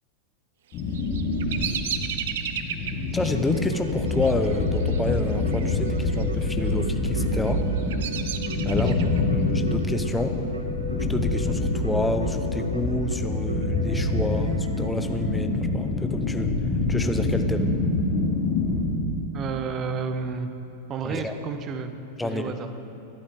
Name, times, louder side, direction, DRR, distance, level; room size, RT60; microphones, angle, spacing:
sound 1, 0.7-18.8, left 2 dB, 35° left, 3.8 m, -26 dB
Bird vocalization bird call bird song, 0.7-5.8 6.0-6.6 7.2-9.2, right 9 dB, 55° right, 0.7 m, -34 dB
voice 1, 3.1-7.7 8.6-8.9 9.3-10.4 11.1-16.5 16.9-17.7 21.0-21.4 22.2-22.5, left 2 dB, 5° left, 6 dB, 0.9 m, -29 dB
Keyboard (musical), 3.3-15.8, right 1 dB, 80° right, 1.0 m, -37 dB
voice 2, 8.7-9.3 19.3-20.5 20.9-21.9 22.2-22.7, right 5 dB, 30° right, 9 dB, 0.9 m, -31 dB
21.5 x 11.5 x 3.9 m, 2.8 s
figure-of-eight pair, 90°, 0 cm